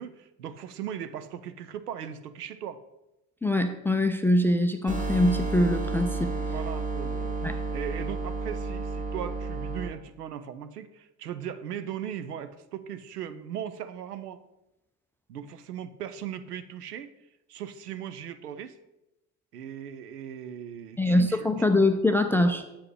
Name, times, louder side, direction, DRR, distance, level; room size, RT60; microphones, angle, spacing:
voice 1, 0.0-2.8 6.4-14.4 15.3-17.1 17.5-18.8 19.5-21.7 22.3-22.6, right 9 dB, 85° right, 11 dB, 0.6 m, -38 dB
voice 2, 3.4-6.3 7.4-7.6 21.0-22.6, left 1 dB, 5° left, 7 dB, 0.3 m, -23 dB
sound 1, 4.9-9.9, right 3 dB, 15° right, 1.5 m, -31 dB
8.4 x 7.6 x 3.2 m, 0.97 s
figure-of-eight pair, 55°, 46 cm